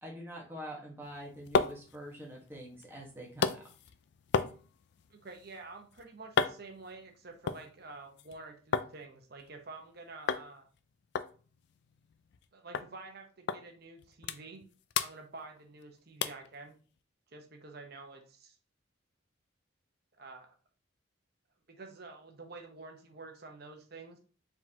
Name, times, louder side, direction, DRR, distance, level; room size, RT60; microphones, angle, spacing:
voice 1, 0.0-3.6, equal, 10° right, -2 dB, 1.2 m, -45 dB
sound 1, 1.0-8.9 9.2-9.9 10.3-10.5 10.7-10.8 11.1-12.5 12.7-12.9 13.5-13.6 14.0-14.6 14.9-15.8 16.2-16.5 17.0-17.1, left 6 dB, 55° left, 0.3 m, -35 dB
voice 2, 5.1-10.6 12.5-14.7 15.0-16.8 17.3-18.6 20.1-20.5 21.7-24.2, right 3 dB, 50° right, 4 dB, 0.9 m, -49 dB
4.7 x 3.9 x 2.8 m, 0.38 s
head